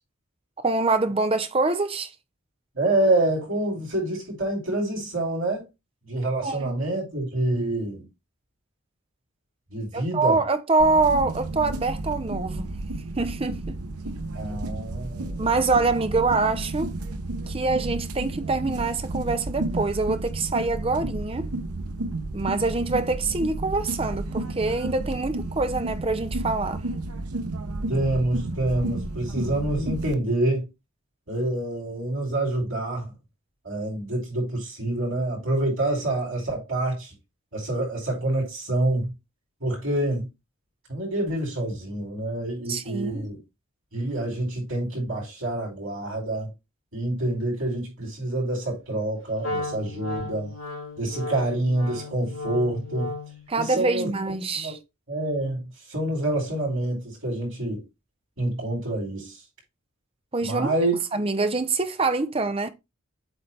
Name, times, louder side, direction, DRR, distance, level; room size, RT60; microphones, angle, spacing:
voice 1, 0.6-2.1 6.4-6.7 9.9-12.7 13.2-13.8 15.4-16.9 17.5-21.5 22.3-26.8 42.7-43.3 53.5-54.8 60.3-60.7 61.1-62.7, right 3 dB, 25° right, 0.7 m, -25 dB
voice 2, 2.7-5.7 6.0-8.0 9.7-10.4 14.3-15.4 27.9-30.7 31.3-33.1 33.6-37.1 37.5-39.1 39.6-40.3 40.9-43.4 43.9-46.5 46.9-50.5 51.0-53.1 53.6-54.1 54.6-54.7 55.1-55.6 55.9-57.8 58.4-59.4 60.4-60.9, right 1 dB, 65° right, 4.2 m, -27 dB
sound 1, 10.8-30.1, right 2 dB, 90° right, 0.9 m, -32 dB
Wind instrument woodwind instrument, 49.4-53.5, left 2 dB, 60° left, 3.0 m, -34 dB
8.1 x 3.4 x 4.4 m
head